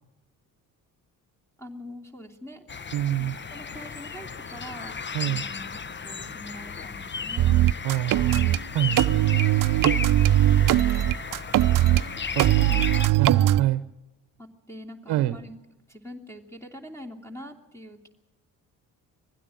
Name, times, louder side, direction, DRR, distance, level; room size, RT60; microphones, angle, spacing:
voice 1, 1.6-2.6 3.2-5.0 5.3-7.6 9.1-9.3 12.6-13.0 13.3-13.7 14.4-15.6 15.9-18.1, left 1 dB, 5° left, 3 dB, 3.0 m, -43 dB
sound 1, 2.7-13.1, left 5 dB, 30° left, 0.9 m, -35 dB
voice 2, 2.9-3.3 5.1-5.4 7.8-9.1 12.3-12.5 13.2-13.8 15.1-15.4, right 14 dB, 80° right, 13 dB, 0.9 m, -26 dB
sound 2, 7.4-8.6 9.0-12.0 12.4-13.6, right 14 dB, 55° right, 0.7 m, -20 dB
21.5 x 16.0 x 7.8 m, 1.0 s
supercardioid pair, 70°, 38 cm